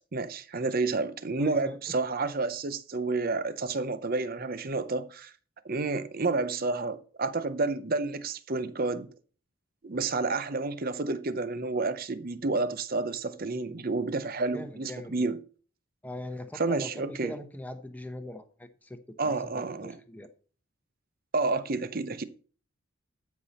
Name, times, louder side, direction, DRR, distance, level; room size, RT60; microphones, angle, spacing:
voice 1, 0.1-5.3 5.6-9.1 9.8-15.4 16.5-17.3 19.2-20.0 21.3-22.2, right 3 dB, 40° right, 0.7 m, -30 dB
voice 2, 1.4-1.8 14.5-15.3 16.0-20.3, left 1 dB, 5° left, 0.8 m, -41 dB
13.0 x 5.7 x 4.2 m
head